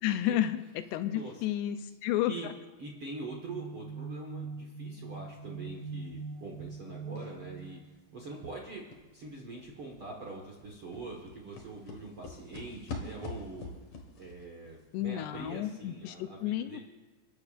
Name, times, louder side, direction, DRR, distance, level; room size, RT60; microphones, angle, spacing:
voice 1, 0.0-0.6 0.9-2.4 14.9-16.8, left 12 dB, 85° left, 10 dB, 2.7 m, -31 dB
voice 2, 2.8-7.8 8.1-8.9 9.1-13.7 14.2-16.8, right 3 dB, 55° right, -1 dB, 1.5 m, -43 dB
sound 1, 3.3-8.8, right 4 dB, 70° right, 2.5 m, -43 dB
sound 2, 7.2-7.5 7.9-8.0 8.2-16.0 16.2-16.3, left 3 dB, 55° left, 1.9 m, -46 dB
30.0 x 12.5 x 2.5 m, 1.3 s
omnidirectional pair, 4.8 m